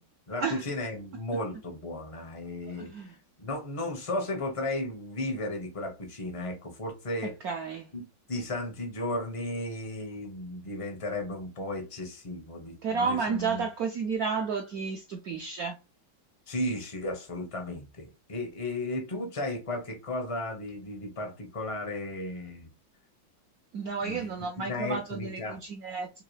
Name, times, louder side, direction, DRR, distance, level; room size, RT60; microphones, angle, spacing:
voice 1, 0.3-7.3 7.9-13.6 16.5-22.7 24.0-24.3 24.6-25.6, left 1 dB, 45° left, 0.4 m, -35 dB
voice 2, 2.7-3.1 7.4-7.9 12.8-15.8 23.7-26.2, right 5 dB, 75° right, 0.8 m, -32 dB
3.8 x 3.0 x 3.1 m
omnidirectional pair, 2.2 m